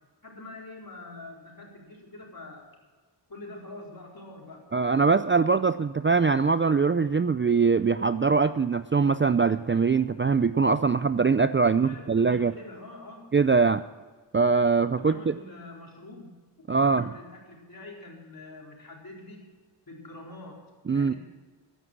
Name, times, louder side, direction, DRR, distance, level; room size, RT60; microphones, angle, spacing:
voice 1, 0.2-2.7 3.3-4.7 11.6-13.3 14.9-16.3 16.7-19.5 19.9-21.2, left 2 dB, 50° left, -1 dB, 4.4 m, -45 dB
voice 2, 4.7-12.5 13.3-13.8 14.3-15.3 16.7-17.1 20.9-21.1, right 5 dB, 30° right, 13 dB, 0.4 m, -22 dB
14.5 x 11.0 x 6.2 m, 1.4 s
wide cardioid pair, 90°, 45 cm